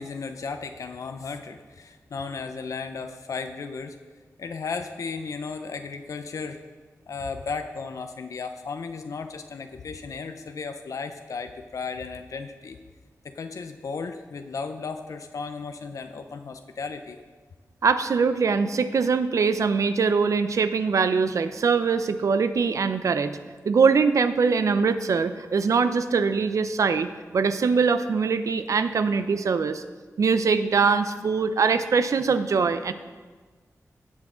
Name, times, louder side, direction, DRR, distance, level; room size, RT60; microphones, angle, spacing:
voice 1, 0.0-4.0 4.4-6.6 7.1-12.8 13.2-17.2, left 4 dB, 75° left, 7 dB, 0.6 m, -35 dB
voice 2, 17.8-23.4 23.6-29.8 30.2-32.9, right 5 dB, 70° right, 11 dB, 0.6 m, -22 dB
17.0 x 6.2 x 3.8 m, 1.4 s
wide cardioid pair, 115°, 6 cm